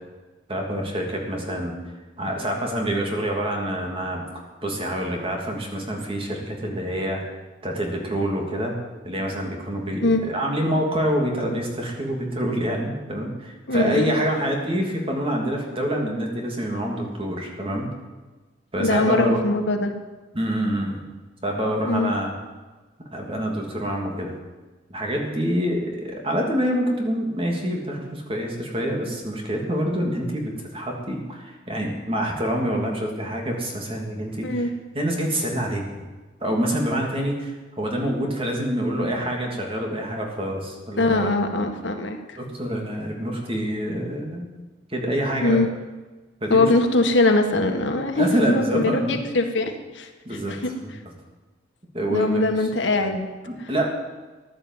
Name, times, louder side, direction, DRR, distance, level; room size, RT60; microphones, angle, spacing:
voice 1, 0.5-1.8 2.2-4.2 4.6-7.2 7.6-8.7 9.0-17.9 18.7-19.4 20.3-21.1 21.4-22.3 23.1-24.3 24.9-34.7 34.9-36.0 36.4-41.3 42.4-44.5 44.9-45.6 46.4-46.7 48.2-49.2 50.2-50.6 50.8-50.9 51.9-52.4 53.0-53.1 53.4-53.8, equal, 30° right, 0 dB, 3.0 m, -26 dB
voice 2, 13.7-14.1 18.8-19.9 21.8-22.1 34.4-34.7 41.0-42.4 45.4-45.7 46.5-50.7 52.1-53.3, left 2 dB, 75° left, 4 dB, 1.8 m, -22 dB
15.0 x 11.0 x 8.1 m, 1.2 s
head